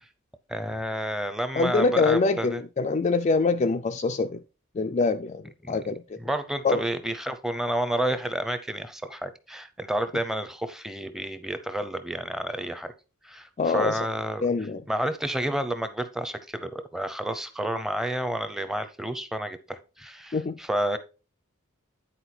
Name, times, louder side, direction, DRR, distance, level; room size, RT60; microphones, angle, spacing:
voice 1, 0.5-2.6 5.6-5.8 6.2-12.9 13.2-14.5 14.9-21.0, right 1 dB, ahead, 0.7 m, -30 dB
voice 2, 1.5-4.4 4.8-6.2 6.6-6.8 13.6-14.0 14.4-14.8 20.3-20.6, left 4 dB, 35° left, 0.4 m, -24 dB
10.0 x 4.5 x 4.4 m
head